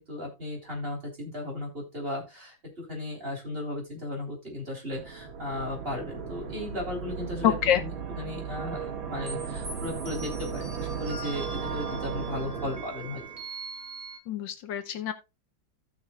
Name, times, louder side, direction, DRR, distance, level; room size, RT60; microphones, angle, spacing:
voice 1, 0.0-7.9 8.2-13.2, left 1 dB, 30° right, 3.7 m, -36 dB
sound 1, 4.9-13.4, right 7 dB, 85° right, 2.5 m, -36 dB
voice 2, 7.4-7.8 14.3-15.1, left 10 dB, 75° left, 1.5 m, -26 dB
sound 2, 9.3-14.2, right 3 dB, 45° right, 2.3 m, -41 dB
15.0 x 6.2 x 2.3 m
omnidirectional pair, 2.1 m